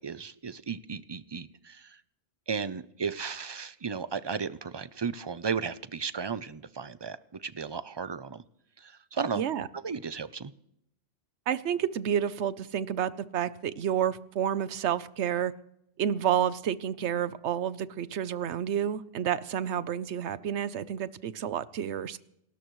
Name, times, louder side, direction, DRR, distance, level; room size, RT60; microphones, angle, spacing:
voice 1, 0.0-2.0 2.5-8.4 8.8-9.4 9.7-10.5, right 5 dB, 35° right, 15 dB, 0.4 m, -35 dB
voice 2, 9.3-9.7 11.5-15.5 16.0-22.2, right 9 dB, 90° right, 16 dB, 1.0 m, -30 dB
28.0 x 13.5 x 3.1 m, 0.77 s
omnidirectional pair, 1.1 m